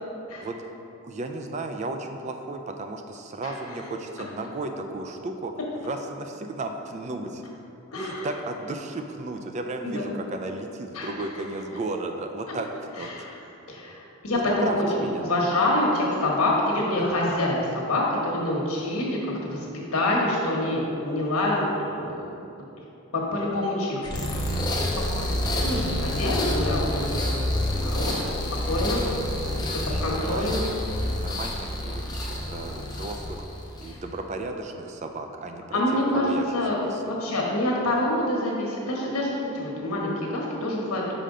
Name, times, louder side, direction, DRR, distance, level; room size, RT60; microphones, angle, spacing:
voice 1, 1.0-5.5 5.8-7.4 7.9-12.7 13.0-13.1 14.3-15.3 29.7-33.4 33.8-37.2, right 2 dB, 30° right, 5 dB, 0.3 m, -34 dB
voice 2, 7.9-8.3 9.8-10.1 10.9-11.1 13.0-13.3 13.7-14.8 15.2-19.7 19.9-22.3 23.1-24.1 25.2-28.2 28.7-29.0 29.7-30.6 35.7-36.3 36.5-36.8 37.1-41.2, left 1 dB, 90° left, -3 dB, 1.2 m, -26 dB
sound 1, 24.0-34.0, left 1 dB, 20° left, 0.5 m, -28 dB
5.5 x 5.1 x 3.7 m, 2.7 s
head